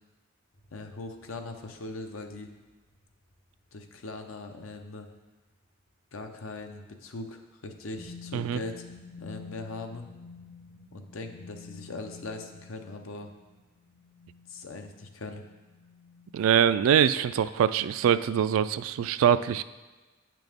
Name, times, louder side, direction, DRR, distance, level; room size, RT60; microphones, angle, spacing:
sound 1, 0.5-5.8 8.0-17.5, left 4 dB, 40° left, 1.0 m, -51 dB
voice 1, 0.7-2.5 3.7-5.1 6.1-8.8 9.2-10.0 10.9-13.3 14.5-15.4, left 2 dB, 80° left, 5 dB, 0.7 m, -40 dB
voice 2, 16.3-19.6, right 8 dB, 80° right, 14 dB, 0.3 m, -23 dB
8.8 x 6.0 x 3.6 m, 1.2 s
head